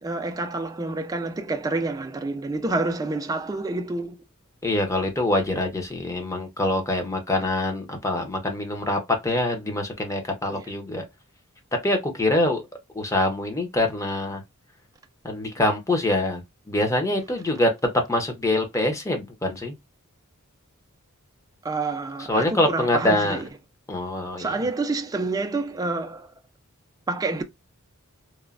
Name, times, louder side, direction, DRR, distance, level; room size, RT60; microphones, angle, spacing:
voice 1, 0.0-4.2 10.5-10.7 21.6-23.5 24.4-26.3 27.1-27.4, right 3 dB, 15° right, 0.3 m, -28 dB
voice 2, 4.6-11.0 11.8-12.6 12.9-14.4 15.2-16.4 16.7-17.7 18.1-19.7 22.3-23.4 23.9-24.5, left 1 dB, 15° left, 0.6 m, -24 dB
3.0 x 2.1 x 2.4 m
head